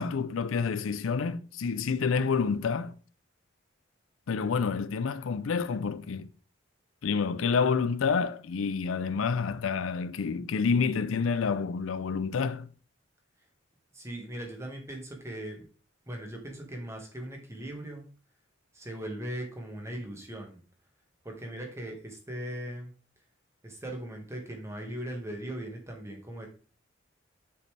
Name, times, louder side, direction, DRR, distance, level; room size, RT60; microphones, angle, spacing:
voice 1, 0.0-2.9 4.3-6.3 7.0-12.7, left 5 dB, 85° left, 0.5 m, -28 dB
voice 2, 13.9-15.7 16.1-18.0 18.7-20.6 21.2-22.9 23.6-26.5, right 1 dB, 15° right, 1.5 m, -39 dB
6.7 x 5.3 x 3.3 m
head